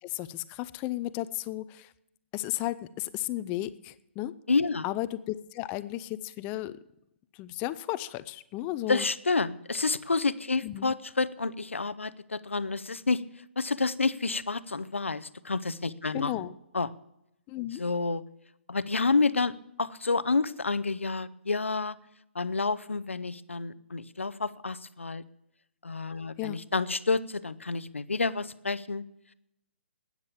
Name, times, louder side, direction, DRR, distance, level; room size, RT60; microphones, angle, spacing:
voice 1, 0.0-1.9 2.3-4.3 4.8-6.8 7.3-9.1 10.6-10.9 16.1-16.6 17.5-17.8 26.4-26.6, left 15 dB, 25° left, 16 dB, 0.6 m, -34 dB
voice 2, 4.5-4.8 8.9-13.2 13.6-16.3 16.7-16.9 17.8-18.2 18.7-19.5 19.8-22.0 22.3-25.2 25.8-29.0, left 3 dB, 85° left, 16 dB, 0.7 m, -29 dB
13.0 x 9.7 x 7.2 m, 0.83 s
figure-of-eight pair, 135°, 7 cm